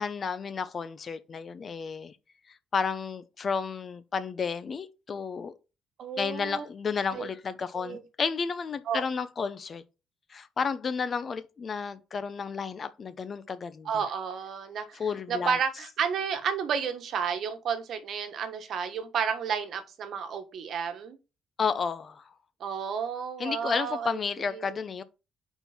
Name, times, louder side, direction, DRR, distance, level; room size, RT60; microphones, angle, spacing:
voice 1, 0.0-2.2 2.5-5.5 6.2-9.8 10.3-13.9 14.9-15.6 21.6-22.2 23.4-25.0, left 5 dB, 45° left, 0.7 m, -32 dB
voice 2, 6.0-6.7 7.1-7.3 7.7-8.0 8.9-9.0 13.8-15.0 15.3-21.2 22.6-24.2 24.5-24.7, right 7 dB, 65° right, 1.3 m, -31 dB
5.2 x 4.5 x 4.3 m
cardioid pair, 90°, 0 cm